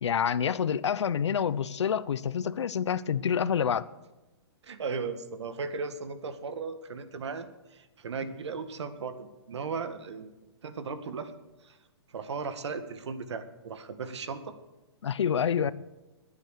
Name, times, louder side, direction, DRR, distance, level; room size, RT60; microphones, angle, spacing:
voice 1, 0.0-3.9 15.0-15.7, left 8 dB, 85° left, 0.8 m, -27 dB
voice 2, 4.6-10.3 10.6-11.3 11.6-11.8 12.1-14.6 15.6-15.7, right 5 dB, 75° right, 1.9 m, -36 dB
21.0 x 9.7 x 6.6 m
hypercardioid pair, 165°, 14 cm